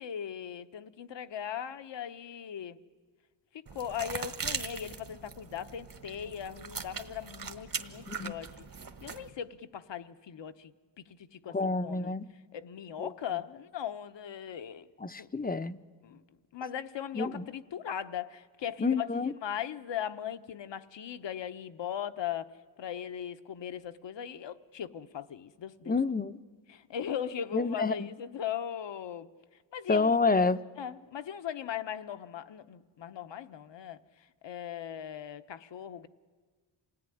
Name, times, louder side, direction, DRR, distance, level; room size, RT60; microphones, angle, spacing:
voice 1, 0.0-2.8 3.7-8.7 9.0-12.1 12.5-14.9 15.2-15.3 16.0-16.2 16.5-22.5 22.8-25.9 26.7-29.3 29.7-30.1 30.8-34.0 34.4-36.1, left 9 dB, 65° left, 1.1 m, -39 dB
sound 1, 3.7-9.3, right 5 dB, 45° right, 1.6 m, -40 dB
voice 2, 11.5-12.3 13.0-13.1 15.0-15.8 17.1-17.5 18.8-19.3 25.9-26.4 27.5-28.1 29.9-30.6, left 4 dB, 20° left, 0.7 m, -28 dB
27.0 x 17.5 x 10.0 m
cardioid pair, 75°, 47 cm